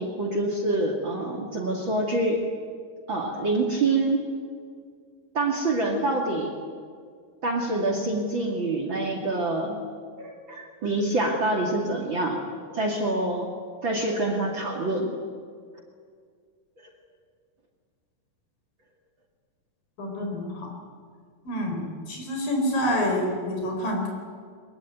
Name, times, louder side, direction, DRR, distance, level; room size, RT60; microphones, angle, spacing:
voice 1, 0.0-2.4 3.1-4.2 5.3-6.5 7.4-9.8 10.2-12.4 12.7-13.5 13.8-15.2, right 2 dB, 40° right, 1 dB, 2.8 m, -26 dB
voice 2, 20.0-20.7 21.4-24.1, left 1 dB, 85° left, 1 dB, 6.2 m, -27 dB
22.0 x 22.0 x 9.3 m, 2.1 s
omnidirectional pair, 3.9 m